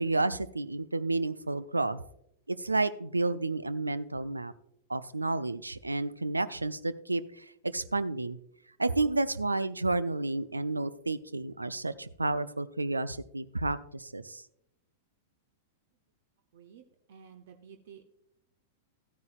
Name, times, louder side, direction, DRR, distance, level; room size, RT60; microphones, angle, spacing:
voice 1, 0.0-2.0 2.5-4.5 4.9-8.4 8.8-14.4, right 2 dB, 80° right, 16 dB, 0.4 m, -31 dB
voice 2, 16.5-18.0, right 7 dB, 55° right, 6 dB, 0.7 m, -52 dB
13.5 x 9.5 x 2.4 m, 0.76 s
figure-of-eight pair, 95°, 0 cm